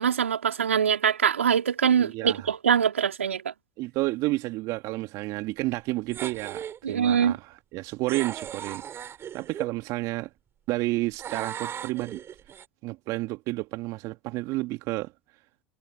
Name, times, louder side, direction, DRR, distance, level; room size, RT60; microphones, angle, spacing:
voice 1, 0.0-3.5 6.8-7.4, right 8 dB, 85° right, 3.5 m, -23 dB
voice 2, 2.0-2.5 3.8-9.0 9.3-10.3 10.7-12.2 12.8-15.1, right 20 dB, 55° right, 2.0 m, -31 dB
sound 1, 6.1-6.8 8.1-9.7 11.2-12.6, right 9 dB, 40° right, 5.3 m, -37 dB
hypercardioid pair, 75°, 7 cm